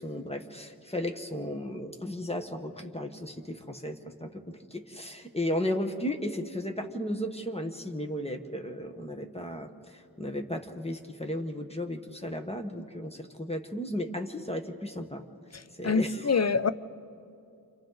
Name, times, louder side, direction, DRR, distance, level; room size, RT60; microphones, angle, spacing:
voice 1, 0.0-15.2 15.8-16.5, left 1 dB, 15° left, 1.3 m, -35 dB
voice 2, 15.8-16.7, left 5 dB, 45° left, 0.6 m, -25 dB
29.0 x 26.5 x 4.0 m
wide cardioid pair, 55°, 36 cm